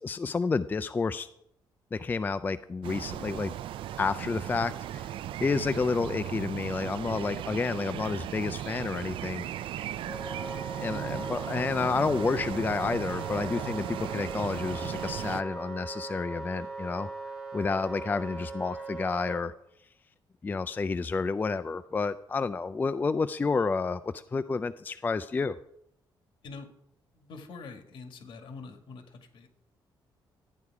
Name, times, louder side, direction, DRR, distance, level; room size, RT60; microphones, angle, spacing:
voice 1, 0.0-1.3 1.9-3.5 4.0-5.1 5.4-9.4 10.8-17.1 17.5-19.5 20.4-25.6, left 4 dB, 20° left, 12 dB, 0.3 m, -30 dB
sound 1, 2.8-15.4, right 11 dB, 75° right, 0.4 m, -37 dB
Wind instrument woodwind instrument, 10.1-19.4, right 3 dB, 5° right, 4.9 m, -40 dB
voice 2, 27.1-29.5, left 4 dB, 65° left, 5 dB, 2.0 m, -45 dB
13.0 x 9.4 x 4.8 m, 0.77 s
cardioid pair, 130°, 9 cm